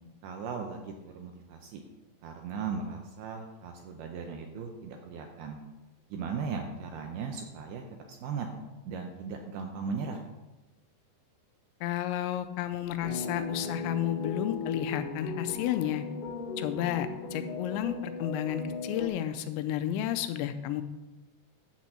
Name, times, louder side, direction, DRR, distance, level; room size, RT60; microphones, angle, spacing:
voice 1, 0.2-1.8 2.2-5.6 6.1-8.5 8.9-10.2, right 5 dB, 80° right, 3 dB, 2.3 m, -37 dB
voice 2, 11.8-16.0 16.6-20.8, left 11 dB, 85° left, 9 dB, 2.9 m, -32 dB
sound 1, 13.0-19.1, left 4 dB, 70° left, 2.9 m, -37 dB
10.5 x 4.1 x 7.5 m, 1.1 s
omnidirectional pair, 5.1 m